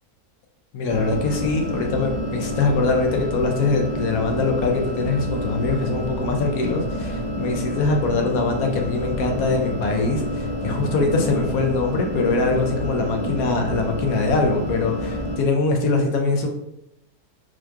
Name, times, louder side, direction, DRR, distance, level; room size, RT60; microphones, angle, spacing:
voice 1, 0.7-16.5, left 3 dB, 70° left, 2 dB, 1.1 m, -23 dB
sound 1, 0.9-15.4, left 1 dB, 50° left, 0.5 m, -28 dB
4.4 x 2.9 x 2.3 m, 0.82 s
omnidirectional pair, 1.7 m